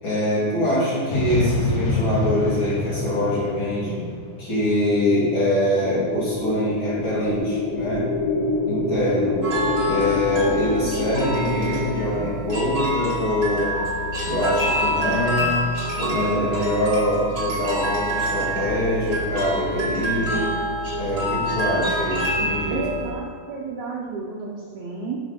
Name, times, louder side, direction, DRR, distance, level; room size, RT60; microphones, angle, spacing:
voice 1, 0.0-4.0 4.4-8.1 8.6-9.4 9.9-13.8 14.2-15.7 16.0-20.5 21.0-22.8, left 1 dB, 40° left, -9 dB, 2.4 m, -24 dB
sound 1, 1.1-5.0, left 2 dB, 60° left, 3.3 m, -26 dB
sound 2, 5.7-14.1, left 2 dB, 80° left, 2.6 m, -27 dB
sound 3, 9.4-23.1, equal, 40° right, 1.8 m, -27 dB
voice 2, 22.7-25.2, right 3 dB, 90° right, -3 dB, 1.6 m, -31 dB
7.0 x 5.2 x 5.9 m, 2.2 s
omnidirectional pair, 4.4 m